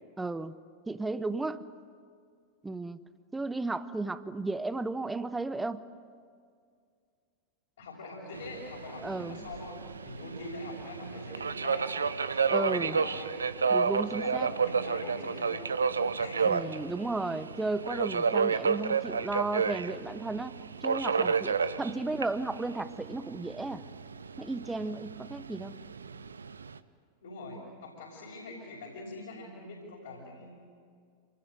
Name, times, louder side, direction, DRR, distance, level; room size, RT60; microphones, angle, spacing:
voice 1, 0.2-0.5 0.9-1.7 2.6-3.0 3.3-5.8 9.0-9.4 12.5-13.0 13.7-14.5 16.4-23.8 24.4-25.7, right 3 dB, 10° right, 14 dB, 0.9 m, -34 dB
voice 2, 7.8-12.0 12.3-13.3 14.1-16.7 21.6-21.8 27.2-30.6, left 2 dB, 65° left, -4 dB, 6.2 m, -44 dB
Subway metro underground, 8.3-26.8, right 5 dB, 75° right, 0.8 m, -31 dB
28.0 x 20.0 x 9.2 m, 2.2 s
figure-of-eight pair, 90°, 0 cm